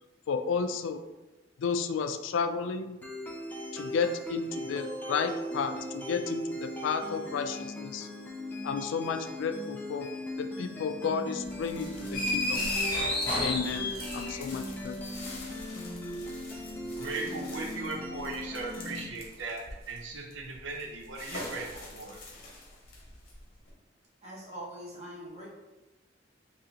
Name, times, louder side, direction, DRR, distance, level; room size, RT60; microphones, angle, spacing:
voice 1, 0.3-1.0 1.6-3.0 3.7-8.1 8.6-10.1 10.4-12.7 13.4-15.2, left 5 dB, 85° left, 8 dB, 0.3 m, -32 dB
sound 1, 3.0-19.0, left 1 dB, 10° left, 0.4 m, -39 dB
sound 2, 11.4-23.7, left 2 dB, 50° left, 0.9 m, -46 dB
sound 3, 12.1-14.6, left 2 dB, 25° left, 1.5 m, -30 dB
voice 2, 16.8-22.2, right 3 dB, 85° right, -1 dB, 0.6 m, -38 dB
voice 3, 24.2-25.5, equal, 35° right, -4 dB, 1.0 m, -43 dB
3.7 x 2.8 x 2.8 m, 1.1 s
head